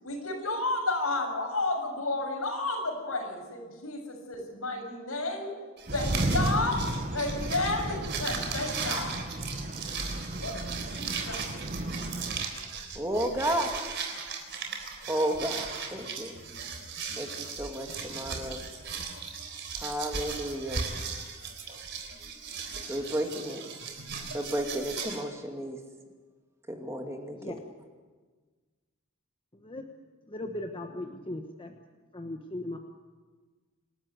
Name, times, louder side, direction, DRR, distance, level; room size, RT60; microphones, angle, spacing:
voice 1, 0.0-5.5 5.9-9.2 10.4-11.5, left 2 dB, 80° left, 1 dB, 7.0 m, -32 dB
sound 1, 5.8-25.2, right 5 dB, 55° right, 3.7 m, -37 dB
sound 2, 5.9-12.5, right 1 dB, 40° right, 1.2 m, -33 dB
voice 2, 13.0-13.7 15.1-16.3 17.2-18.7 19.8-20.9 21.7-21.8 22.9-23.6 24.3-25.8 26.7-27.6, right 1 dB, 15° right, 3 dB, 2.4 m, -32 dB
voice 3, 30.3-31.7 32.1-32.8, left 1 dB, 25° left, 4 dB, 1.2 m, -38 dB
27.0 x 13.0 x 9.7 m, 1.4 s
head